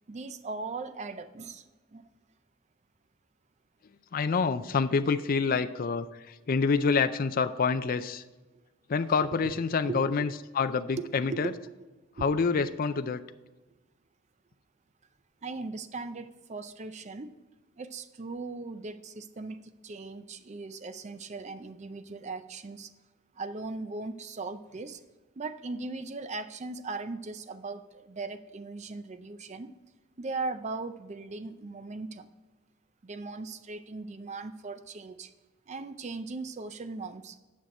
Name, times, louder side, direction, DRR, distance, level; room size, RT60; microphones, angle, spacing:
voice 1, 0.1-2.1 9.2-10.3 11.0-11.5 12.2-12.7 15.4-17.3 17.8-22.9 23.4-25.0 25.4-29.7 30.2-32.3 33.0-35.3 35.7-37.4, right 3 dB, 30° right, 11 dB, 0.5 m, -39 dB
voice 2, 4.1-8.2 8.9-10.3 10.5-11.5 12.2-13.2, left 5 dB, 40° left, 11 dB, 0.4 m, -27 dB
9.4 x 6.3 x 4.3 m, 1.2 s
head